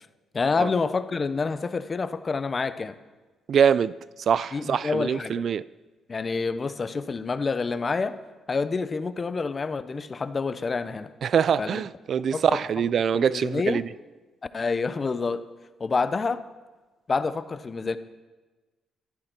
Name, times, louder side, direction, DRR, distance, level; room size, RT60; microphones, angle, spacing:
voice 1, 0.3-2.9 4.5-5.4 6.1-8.2 8.5-11.1 11.6-11.8 12.3-12.6 13.1-13.8 14.5-15.4 15.8-16.4 17.1-18.0, left 4 dB, 35° left, 0.7 m, -28 dB
voice 2, 3.5-3.9 4.3-5.6 11.2-13.8, right 7 dB, 55° right, 0.3 m, -23 dB
14.0 x 12.0 x 4.4 m
cardioid pair, 90°, 0 cm